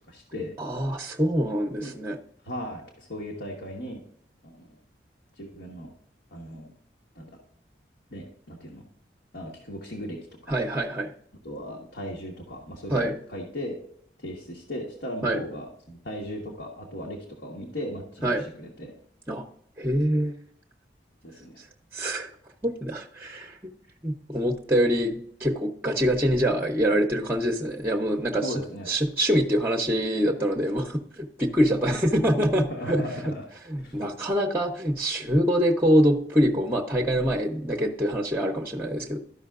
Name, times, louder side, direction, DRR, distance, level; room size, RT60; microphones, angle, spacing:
voice 1, 0.1-0.5 1.8-1.9 2.4-4.0 4.4-4.8 5.4-5.9 6.3-6.7 7.1-7.3 8.1-8.8 9.3-10.2 10.5-10.6 11.4-13.8 14.2-18.9 21.2-21.6 28.3-28.9 31.9-32.0 32.6-33.4 33.8-34.1, equal, 85° left, -2 dB, 1.4 m, -37 dB
voice 2, 0.6-2.2 10.5-11.1 12.9-13.2 15.2-15.4 18.2-18.4 19.3-19.4 19.8-20.4 21.9-22.3 22.6-23.7 24.0-28.6 28.9-33.0 33.7-39.2, equal, 10° right, 2 dB, 0.6 m, -25 dB
13.0 x 5.6 x 2.4 m, 0.67 s
head